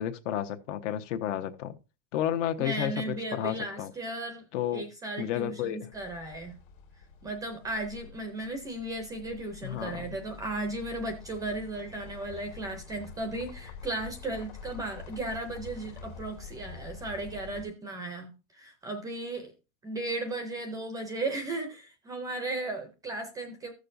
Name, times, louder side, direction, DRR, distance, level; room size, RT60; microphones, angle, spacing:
voice 1, 0.0-1.8 2.1-3.9 4.5-4.8 5.2-5.9 9.6-10.2, left 11 dB, 60° left, 1.2 m, -32 dB
voice 2, 2.6-4.4 4.7-6.6 7.2-19.5 19.8-23.7, right 2 dB, 10° right, 0.5 m, -35 dB
sound 1, 5.9-17.7, left 5 dB, 90° left, 2.1 m, -47 dB
15.0 x 6.6 x 2.6 m
supercardioid pair, 170°, 41 cm